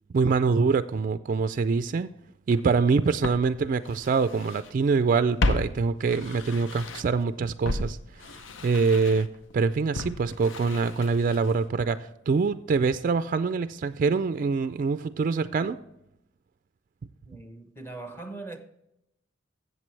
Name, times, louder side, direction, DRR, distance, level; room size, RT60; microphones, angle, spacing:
voice 1, 0.1-2.1 2.5-8.0 8.3-9.3 9.5-15.8, right 4 dB, 45° right, 0.3 m, -25 dB
Walk footsteps, 2.5-2.6 3.2-4.7 5.0-7.2 7.6-11.7 12.0-12.1, left 2 dB, 90° left, 0.6 m, -33 dB
voice 2, 17.2-18.6, right 3 dB, 10° left, 1.0 m, -40 dB
13.5 x 7.8 x 3.2 m
head